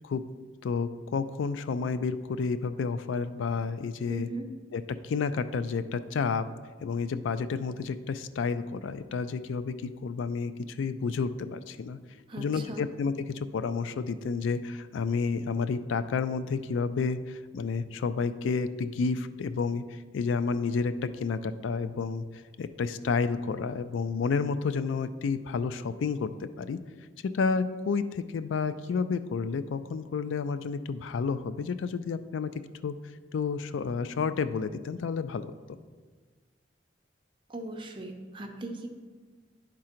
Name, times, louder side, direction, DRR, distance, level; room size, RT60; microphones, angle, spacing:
voice 1, 0.6-4.3 4.7-6.4 6.8-12.0 12.4-22.2 22.6-26.8 27.3-32.5 32.8-32.9 33.3-35.5, left 5 dB, 80° left, 12 dB, 0.3 m, -30 dB
voice 2, 4.1-4.5 12.3-12.8 37.5-38.9, right 2 dB, 25° right, 3 dB, 0.6 m, -38 dB
10.5 x 3.7 x 4.4 m, 1.5 s
head